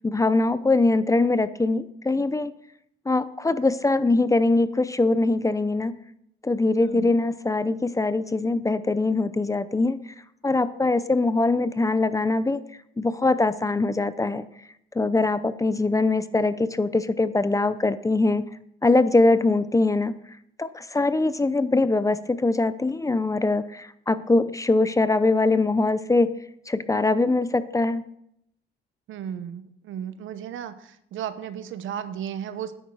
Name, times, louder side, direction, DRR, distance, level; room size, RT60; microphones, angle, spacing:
voice 1, 0.0-2.5 3.1-5.9 6.4-10.0 10.4-12.6 13.0-14.5 14.9-18.4 18.8-20.1 20.6-26.3 26.7-28.0, left 2 dB, 15° left, 14 dB, 0.6 m, -22 dB
voice 2, 29.1-30.7 31.1-32.7, right 9 dB, 80° right, 11 dB, 1.0 m, -34 dB
10.0 x 8.3 x 4.8 m, 0.75 s
cardioid pair, 90°, 20 cm